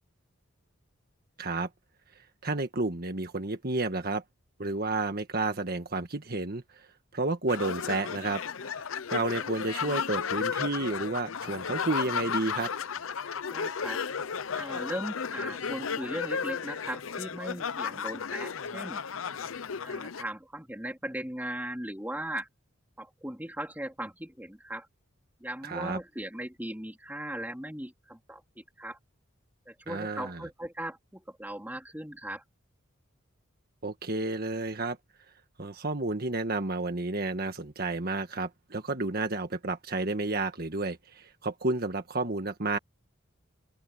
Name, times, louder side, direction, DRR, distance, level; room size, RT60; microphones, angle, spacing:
voice 1, 1.4-1.7 2.4-4.2 4.6-6.9 7.1-12.7 25.6-26.0 29.9-30.4 33.8-35.0 35.6-42.8, right 2 dB, 50° right, 1.6 m, -31 dB
sound 1, 7.5-20.2, left 6 dB, 80° left, 0.7 m, -34 dB
voice 2, 13.5-14.0 14.5-19.0 19.8-22.5 23.0-24.9 25.4-29.0 29.7-32.4, right 1 dB, 10° right, 3.5 m, -38 dB
open air
head